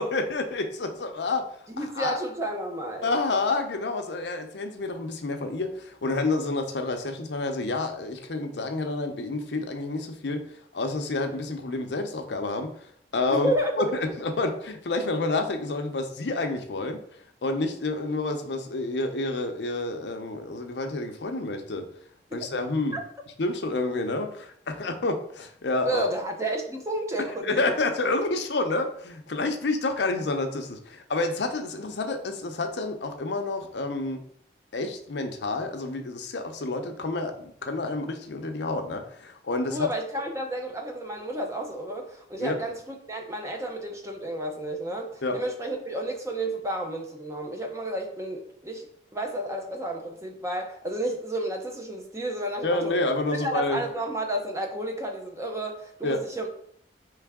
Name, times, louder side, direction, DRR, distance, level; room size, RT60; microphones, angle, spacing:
voice 1, 0.0-1.4 1.8-2.2 3.0-10.4 10.7-12.7 13.1-13.5 13.8-17.0 17.4-21.9 22.3-23.0 23.4-26.1 27.4-34.2 34.7-39.9 42.4-42.6 45.2-45.4 52.6-53.8 56.0-56.2, left 2 dB, 70° left, 5 dB, 0.6 m, -29 dB
voice 2, 1.7-3.2 13.3-13.7 22.9-23.0 25.8-27.9 39.7-52.9 53.4-56.5, right 1 dB, 15° right, 2 dB, 0.6 m, -31 dB
4.6 x 3.3 x 3.5 m, 0.64 s
head